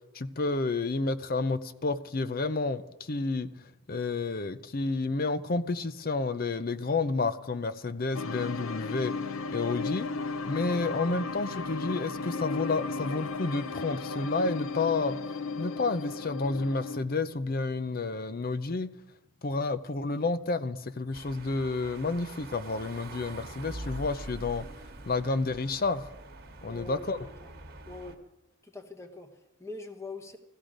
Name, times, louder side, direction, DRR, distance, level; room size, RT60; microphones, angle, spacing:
voice 1, 0.1-3.5 3.9-9.1 9.5-10.1 10.5-15.2 15.6-18.9 19.4-24.7 25.1-26.0 26.6-27.2, left 3 dB, 45° left, 13 dB, 0.6 m, -30 dB
sound 1, 8.1-17.0, left 4 dB, 85° left, 0.7 m, -35 dB
sound 2, 21.1-28.1, right 2 dB, 50° right, 1.4 m, -44 dB
voice 2, 26.7-27.5 27.9-28.2 28.6-30.4, left 3 dB, 15° left, 5 dB, 1.1 m, -43 dB
15.0 x 14.0 x 5.1 m, 0.98 s
head